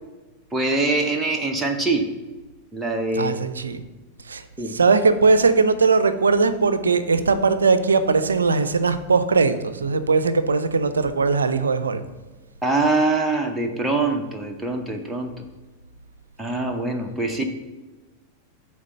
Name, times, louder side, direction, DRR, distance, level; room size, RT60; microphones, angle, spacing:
voice 1, 0.5-2.1 2.7-3.4 4.6-4.7 12.6-15.3 16.4-17.4, right 2 dB, 5° right, 1 dB, 0.8 m, -23 dB
voice 2, 3.1-3.8 4.2-12.0, right 4 dB, 75° right, 12 dB, 0.5 m, -20 dB
8.9 x 3.5 x 6.6 m, 1.2 s
figure-of-eight pair, 90°, 0 cm